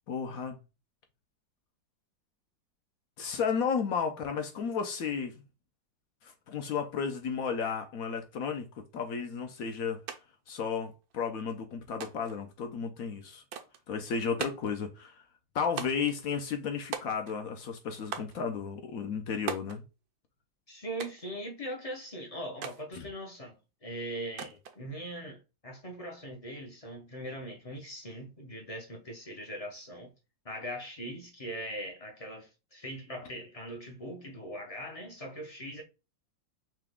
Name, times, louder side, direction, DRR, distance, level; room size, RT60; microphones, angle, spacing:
voice 1, 0.1-0.6 3.2-5.4 6.2-10.0 10.5-13.4 13.9-15.2 15.5-19.8 22.9-23.1, left 6 dB, 65° left, 0.9 m, -33 dB
sound 1, 10.1-10.2 10.5-11.2 12.0-12.4 13.5-13.8 14.4-14.8 15.8-16.2 16.9-17.5 18.1-18.4 19.5-19.8 21.0-21.3 22.6-22.8 24.4-24.8, right 8 dB, 65° right, 1.0 m, -39 dB
voice 2, 20.7-30.1 30.4-35.8, right 1 dB, 35° left, 0.5 m, -41 dB
5.8 x 2.3 x 3.5 m
omnidirectional pair, 2.0 m